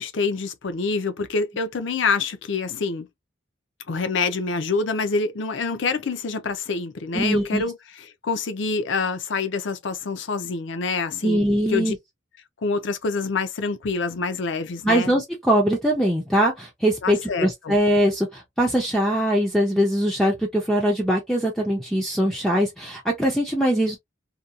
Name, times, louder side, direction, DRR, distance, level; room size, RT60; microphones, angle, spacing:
voice 1, 0.0-3.1 3.9-11.9 12.6-15.1 17.0-17.8, left 4 dB, 65° left, 0.5 m, -26 dB
voice 2, 7.1-7.6 11.2-12.0 14.8-24.0, equal, ahead, 0.5 m, -22 dB
2.7 x 2.3 x 2.3 m
head